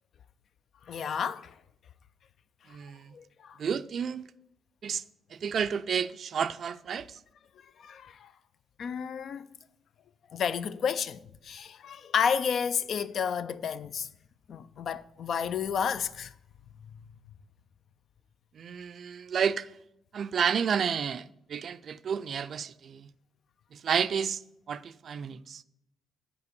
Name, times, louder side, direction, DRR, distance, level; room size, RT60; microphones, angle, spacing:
voice 1, 0.9-1.5 3.1-3.6 7.8-8.3 8.8-9.5 10.3-14.1 14.5-16.3, left 7 dB, 60° left, 0.3 m, -31 dB
voice 2, 2.7-3.1 3.6-4.3 4.8-5.0 5.3-7.2 18.5-19.7 20.1-23.1 23.7-24.4 24.7-25.6, right 7 dB, 55° right, 0.3 m, -31 dB
6.8 x 5.0 x 6.8 m
cardioid pair, 90°, 0 cm